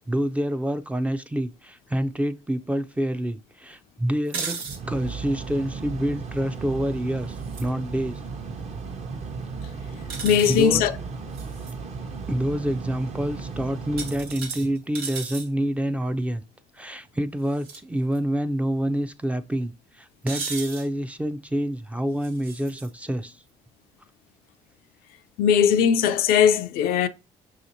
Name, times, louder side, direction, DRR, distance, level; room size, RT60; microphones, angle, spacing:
voice 1, 0.1-4.6 4.9-8.2 10.5-10.8 12.3-16.4 16.7-23.4, equal, 10° right, 0.4 m, -27 dB
Mechanical fan, 4.3-14.8, right 4 dB, 45° right, 0.8 m, -35 dB
sound 1, 4.3-4.8 7.4-7.7 10.1-10.7 11.3-11.7 14.0-15.5 17.5-17.8 18.1-18.2 20.3-20.9 22.2-22.9, right 5 dB, 85° right, 1.0 m, -35 dB
voice 2, 10.2-10.9 25.4-27.1, left 8 dB, 75° left, 0.4 m, -19 dB
5.6 x 2.8 x 2.6 m
supercardioid pair, 75°, 15 cm